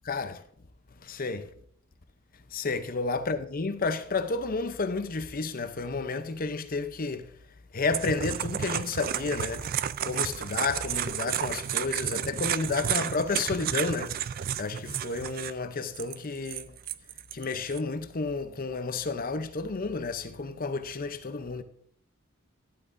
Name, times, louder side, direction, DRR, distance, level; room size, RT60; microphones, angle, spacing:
voice 1, 0.1-0.4 1.0-1.5 2.5-7.3 7.7-14.3 14.6-16.7 17.3-21.6, left 3 dB, 45° left, 0.7 m, -31 dB
sound 1, 7.9-15.5 15.9-17.8, right 10 dB, 45° right, 0.3 m, -32 dB
12.0 x 11.5 x 2.6 m
head